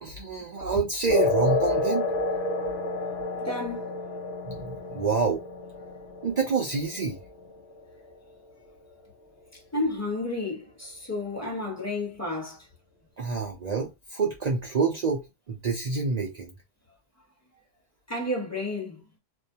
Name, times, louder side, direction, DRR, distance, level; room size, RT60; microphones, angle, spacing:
voice 1, 0.0-2.1 4.4-5.4 6.2-7.2 13.2-16.5, right 4 dB, 70° right, 0.4 m, -27 dB
sound 1, 1.1-8.1, left 2 dB, 65° left, 0.7 m, -30 dB
voice 2, 3.4-3.9 9.7-12.6 18.1-19.0, left 2 dB, 15° left, 1.0 m, -31 dB
2.5 x 2.2 x 2.6 m
omnidirectional pair, 1.3 m